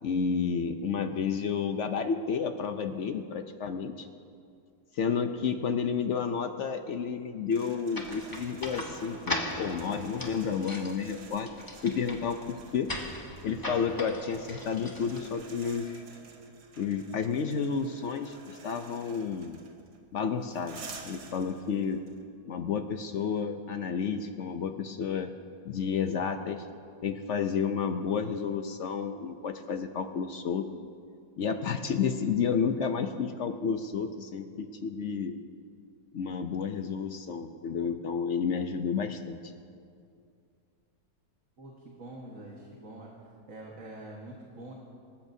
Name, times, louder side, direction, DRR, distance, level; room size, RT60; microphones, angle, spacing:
voice 1, 0.0-4.1 4.9-11.5 11.8-12.9 13.4-16.0 16.8-19.6 20.1-22.0 22.5-25.3 25.7-26.6 27.0-30.7 31.4-35.4 36.1-39.5, left 6 dB, 60° left, 8 dB, 0.8 m, -31 dB
sound 1, 7.5-22.2, right 4 dB, 90° right, 1.8 m, -51 dB
sound 2, 7.9-15.6, left 1 dB, 15° left, 1.0 m, -39 dB
voice 2, 41.6-43.1 43.5-44.7, right 1 dB, 55° right, -2 dB, 1.8 m, -45 dB
25.5 x 13.5 x 2.7 m, 2.4 s
omnidirectional pair, 1.7 m